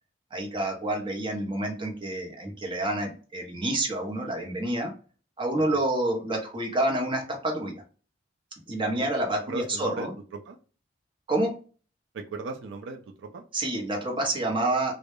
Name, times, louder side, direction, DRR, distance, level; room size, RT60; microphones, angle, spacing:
voice 1, 0.3-4.9 5.4-7.8 8.7-10.1 11.3-11.5 13.5-15.0, right 1 dB, 30° right, 1 dB, 0.7 m, -28 dB
voice 2, 9.5-10.6 12.1-13.4, right 3 dB, 75° right, 3 dB, 0.3 m, -37 dB
2.2 x 2.0 x 3.0 m, 0.38 s
head